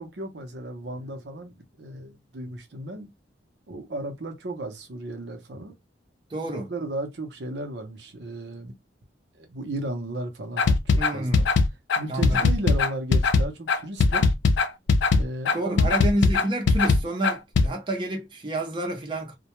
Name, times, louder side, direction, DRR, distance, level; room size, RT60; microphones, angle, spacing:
voice 1, 0.0-3.1 3.7-5.7 6.5-8.7 9.3-11.5 12.0-14.3 15.1-15.9, right 1 dB, 70° right, 0.7 m, -35 dB
voice 2, 6.3-6.7 11.0-11.5 12.1-12.5 15.5-19.4, right 1 dB, 25° right, 0.5 m, -29 dB
sound 1, 10.6-17.7, left 4 dB, 85° left, 0.4 m, -20 dB
2.2 x 2.1 x 2.9 m
head